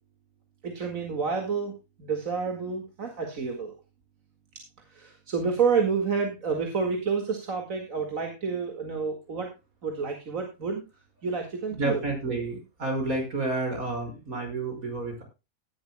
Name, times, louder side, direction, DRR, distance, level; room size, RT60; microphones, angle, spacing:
voice 1, 0.6-3.8 4.9-9.5 9.8-10.8 11.2-12.0, right 5 dB, 70° right, 3 dB, 2.4 m, -29 dB
voice 2, 11.8-15.2, right 2 dB, 90° right, 3 dB, 6.1 m, -30 dB
17.0 x 11.5 x 2.2 m, 0.27 s
omnidirectional pair, 1.4 m